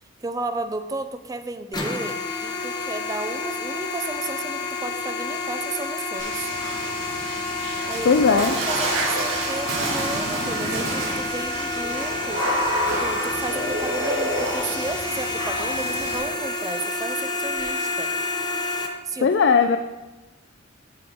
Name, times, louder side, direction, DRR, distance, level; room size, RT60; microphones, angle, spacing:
voice 1, 0.2-6.4 7.9-12.4 13.0-18.1 19.0-19.3, right 2 dB, 20° right, 9 dB, 0.4 m, -33 dB
sound 1, 1.7-18.9, left 3 dB, 20° left, 0.8 m, -29 dB
Water / Splash splatter, 6.2-16.2, right 1 dB, 80° right, 1.9 m, -28 dB
voice 2, 8.0-8.5 19.2-19.8, left 5 dB, 65° left, 7 dB, 0.4 m, -17 dB
13.0 x 4.8 x 3.5 m, 1.1 s
head